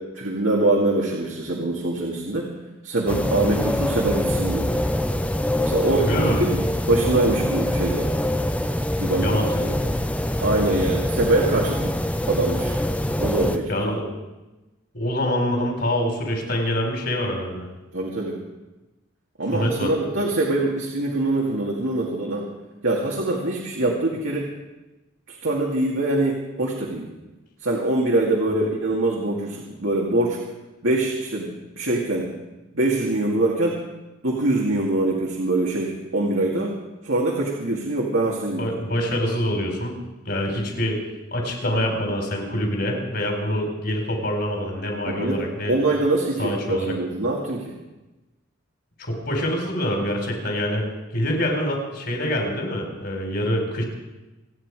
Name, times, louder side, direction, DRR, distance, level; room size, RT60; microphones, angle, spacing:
voice 1, 0.0-2.5 2.8-4.7 5.6-6.1 6.4-6.6 6.9-8.1 9.0-9.7 10.4-12.0 12.3-12.7 13.2-13.6 17.9-18.4 19.4-22.5 22.8-24.5 25.3-27.1 27.6-30.4 30.8-32.3 32.7-33.8 34.2-36.8 37.0-38.7 45.1-47.7, right 2 dB, 75° right, -2 dB, 2.3 m, -23 dB
sound 1, 3.1-13.6, left 1 dB, 5° left, 0.6 m, -24 dB
voice 2, 6.0-6.4 9.2-9.5 13.4-14.1 14.9-17.7 19.5-19.9 28.6-28.7 38.6-40.0 40.3-41.0 41.3-45.7 46.4-47.0 49.0-50.9 51.1-53.8, equal, 50° left, 1 dB, 4.3 m, -25 dB
28.0 x 9.6 x 4.9 m, 1.1 s
head